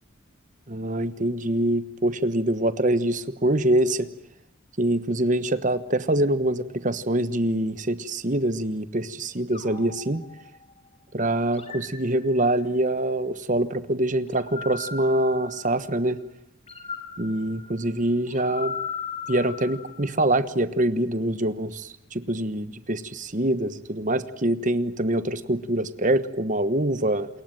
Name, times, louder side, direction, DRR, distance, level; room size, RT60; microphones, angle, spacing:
voice 1, 0.7-4.1 4.8-10.2 11.1-16.2 17.2-18.7 19.3-27.3, right 1 dB, 40° right, 13 dB, 1.2 m, -24 dB
sound 1, 9.5-10.9 11.5-12.8 14.3-16.0 16.7-20.2, left 5 dB, 30° left, 4.1 m, -38 dB
28.0 x 22.0 x 9.1 m, 0.77 s
head